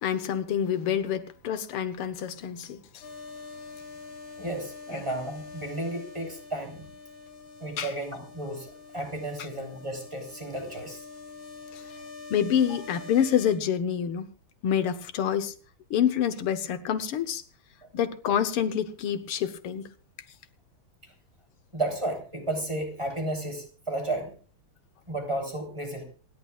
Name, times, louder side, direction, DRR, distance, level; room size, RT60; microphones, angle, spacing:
voice 1, 0.0-3.0 7.8-7.9 11.7-11.8 12.3-14.3 14.6-15.5 15.9-17.4 17.9-19.9, left 9 dB, 80° left, 1.9 m, -27 dB
sound 1, 3.0-13.6, left 4 dB, 65° left, 3.8 m, -45 dB
voice 2, 4.4-6.9 7.6-11.0 21.0-21.1 21.7-24.3 25.1-26.0, right 1 dB, 15° right, 3.5 m, -33 dB
27.0 x 11.5 x 2.4 m
omnidirectional pair, 2.4 m